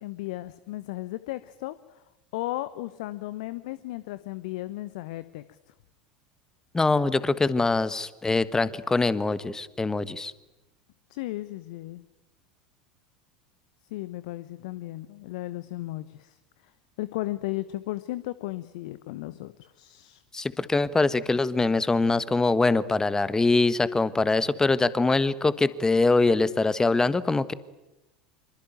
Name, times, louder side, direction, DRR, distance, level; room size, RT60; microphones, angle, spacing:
voice 1, 0.0-2.0 2.3-5.7 11.1-12.0 13.9-16.4 16.6-16.7 17.0-20.2, left 17 dB, 60° left, 15 dB, 1.0 m, -35 dB
voice 2, 6.7-10.3 20.3-27.5, left 3 dB, 15° left, 16 dB, 1.4 m, -23 dB
25.5 x 24.0 x 9.2 m, 0.99 s
figure-of-eight pair, 75°, 4 cm